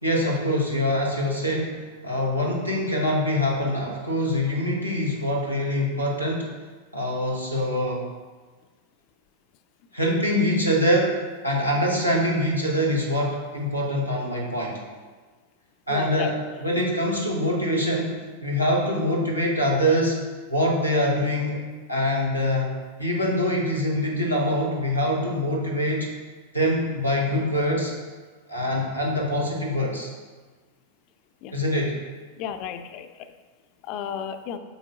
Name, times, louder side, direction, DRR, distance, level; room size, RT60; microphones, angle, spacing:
voice 1, 0.0-6.5 6.9-8.0 9.9-11.2 11.4-14.8 15.9-20.2 20.5-21.6 21.9-22.7 23.0-26.1 26.5-27.9 28.5-30.1 31.5-32.0, equal, 90° right, -3 dB, 1.2 m, -24 dB
voice 2, 15.9-16.3 16.8-16.9 31.4-31.5 32.4-33.1 33.8-34.6, left 8 dB, 40° left, 9 dB, 0.4 m, -33 dB
8.1 x 5.4 x 2.5 m, 1.4 s
figure-of-eight pair, 90°, 0 cm